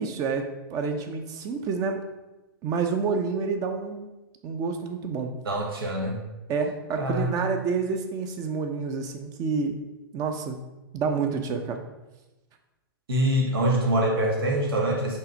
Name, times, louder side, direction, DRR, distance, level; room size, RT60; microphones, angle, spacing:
voice 1, 0.0-2.0 2.6-4.1 4.4-5.3 6.5-9.8 10.1-10.6 10.9-11.8, right 5 dB, 30° right, 6 dB, 0.7 m, -28 dB
voice 2, 5.4-6.2 6.9-7.3 13.1-15.2, right 1 dB, 80° right, -1 dB, 1.6 m, -24 dB
5.5 x 3.3 x 5.1 m, 1.0 s
hypercardioid pair, 130°, 12 cm